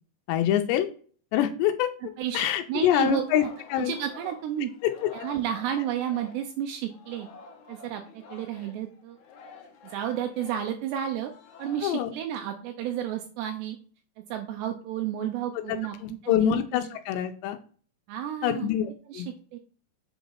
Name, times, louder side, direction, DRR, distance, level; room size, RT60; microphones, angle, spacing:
voice 1, 0.3-0.9 1.3-3.5 3.7-3.9 4.8-5.1 11.8-12.1 15.7-17.6 18.4-19.3, left 12 dB, 85° left, 6 dB, 2.8 m, -26 dB
voice 2, 2.2-3.5 3.8-4.7 5.1-7.3 7.7-9.2 9.8-11.3 11.6-13.8 14.3-16.0 16.2-16.6 18.1-18.7 19.1-19.2 19.5-19.6, right 10 dB, 80° right, 5 dB, 2.8 m, -31 dB
Singing, 3.0-6.6 6.9-11.8, left 5 dB, 70° left, 1.9 m, -48 dB
8.0 x 4.1 x 5.6 m, 0.43 s
omnidirectional pair, 5.0 m